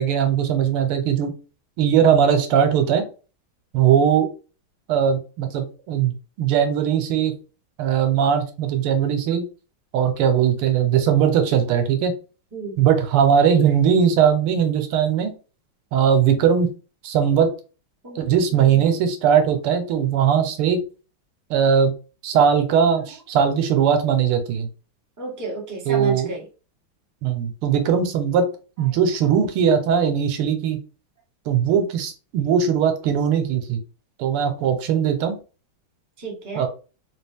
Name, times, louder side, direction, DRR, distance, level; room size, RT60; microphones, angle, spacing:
voice 1, 0.0-1.3 1.8-3.0 3.7-4.3 4.9-7.4 7.8-9.5 9.9-12.1 12.8-15.3 15.9-16.7 17.0-17.5 18.2-20.8 21.5-21.9 22.2-24.7 25.9-26.3 27.2-28.5 28.8-30.8 31.5-33.8 34.2-35.4 36.6-36.7, right 8 dB, 85° right, 7 dB, 1.7 m, -19 dB
voice 2, 12.5-12.9 18.0-19.0 25.2-26.5 36.2-36.7, right 3 dB, 15° right, -2 dB, 0.8 m, -33 dB
3.9 x 2.9 x 3.4 m, 0.35 s
omnidirectional pair, 2.3 m